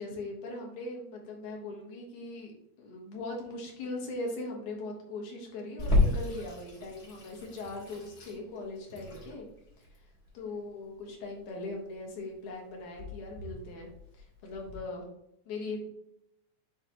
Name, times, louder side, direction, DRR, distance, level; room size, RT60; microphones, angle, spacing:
voice 1, 0.0-2.5 2.8-9.5 9.8-9.9 10.3-15.1 15.5-15.9, left 2 dB, 70° left, -1 dB, 2.8 m, -40 dB
Water tap faucet / Sink (filling or washing), 5.8-14.8, left 2 dB, 45° left, 1.3 m, -33 dB
9.7 x 3.3 x 3.0 m, 0.82 s
omnidirectional pair, 3.7 m